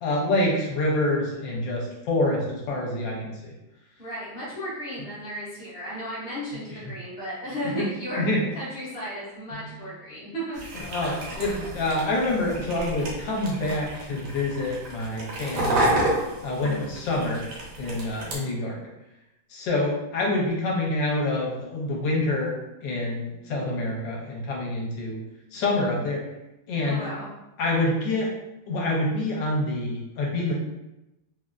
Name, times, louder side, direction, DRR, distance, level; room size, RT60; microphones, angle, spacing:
voice 1, 0.0-3.4 7.8-7.9 8.2-8.4 9.5-9.8 10.7-16.0 16.4-17.4 17.8-18.8 19.5-25.2 25.5-26.2 26.7-27.1 27.6-28.3 28.7-30.5, left 2 dB, 75° left, -2 dB, 1.3 m, -27 dB
voice 2, 4.0-10.9 16.6-16.9 26.8-27.3, equal, 45° left, -8 dB, 0.8 m, -35 dB
sound 1, 10.5-18.4, right 1 dB, 75° right, 1.5 m, -30 dB
3.7 x 2.0 x 2.4 m, 0.94 s
omnidirectional pair, 2.1 m